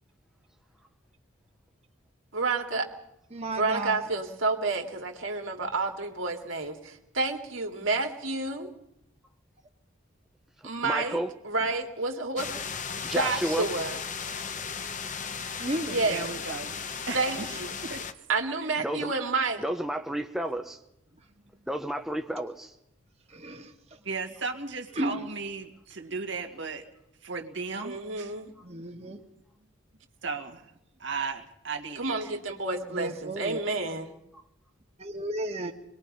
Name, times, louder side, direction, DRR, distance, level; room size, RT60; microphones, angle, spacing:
voice 1, 2.3-2.9 3.5-8.7 10.6-11.2 11.4-12.5 13.0-14.0 15.9-16.3 17.1-17.7 18.3-19.6 27.8-28.5 32.0-34.2, right 3 dB, 80° right, 3 dB, 2.5 m, -30 dB
voice 2, 3.3-4.0 15.6-16.2 23.3-23.7 25.0-25.1 28.6-29.2 32.9-33.6 35.0-35.7, right 1 dB, 30° right, 2 dB, 1.8 m, -33 dB
voice 3, 10.8-11.3 13.0-13.7 18.8-19.1 19.6-20.8 21.7-22.7 34.3-34.4, right 1 dB, ahead, 4 dB, 0.7 m, -31 dB
sound 1, 12.4-18.1, left 6 dB, 40° left, 1.0 m, -36 dB
voice 4, 16.1-16.8 17.1-18.0 24.0-26.9 27.2-28.3 30.2-30.7 31.0-32.3, right 4 dB, 65° right, 4 dB, 2.1 m, -35 dB
24.5 x 21.0 x 5.6 m, 0.82 s
head